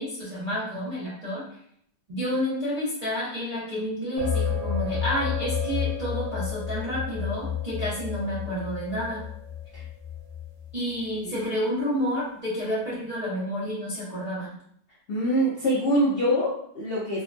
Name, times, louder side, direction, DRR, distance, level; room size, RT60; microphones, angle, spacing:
voice 1, 0.0-1.5 2.1-9.2 10.7-14.5 16.3-16.4, equal, 45° right, -8 dB, 0.5 m, -30 dB
sound 1, 4.2-10.7, left 7 dB, 70° right, 1.2 m, -31 dB
voice 2, 15.1-17.2, equal, 70° left, -6 dB, 0.5 m, -24 dB
3.5 x 2.1 x 2.5 m, 0.67 s
omnidirectional pair, 1.9 m